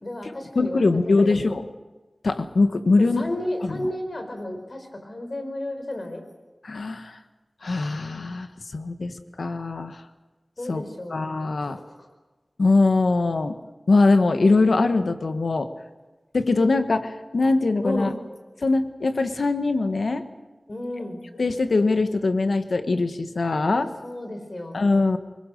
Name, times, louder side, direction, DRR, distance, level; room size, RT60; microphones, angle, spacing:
voice 1, 0.0-1.4 3.0-6.2 10.6-11.2 11.6-12.1 17.8-18.1 20.7-21.2 23.7-24.8, left 1 dB, 50° left, 5 dB, 5.2 m, -33 dB
voice 2, 0.5-1.7 2.2-3.3 3.6-3.9 6.6-7.2 7.6-10.0 10.7-10.8 11.1-11.8 12.6-13.6 13.9-15.7 16.3-18.1 18.6-20.3 21.3-23.9 24.7-25.2, left 3 dB, 90° left, 8 dB, 1.5 m, -22 dB
25.0 x 21.5 x 6.8 m, 1.2 s
wide cardioid pair, 60°, 0 cm